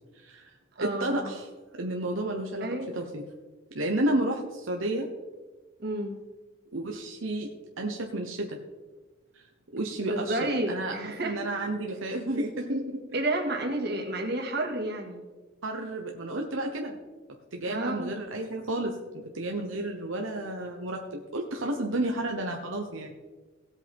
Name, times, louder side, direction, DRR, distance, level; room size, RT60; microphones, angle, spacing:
voice 1, 0.1-0.5 0.8-1.5 1.8-3.2 3.7-5.1 6.7-8.6 9.4-9.5 9.7-13.0 15.6-17.0 17.5-23.1, right 1 dB, 85° right, 2 dB, 1.1 m, -31 dB
voice 2, 0.8-1.3 2.6-2.9 5.8-6.2 10.1-11.4 13.1-15.2 17.7-18.1, right 1 dB, 55° right, 1 dB, 2.1 m, -31 dB
17.5 x 8.1 x 3.6 m, 1.3 s
head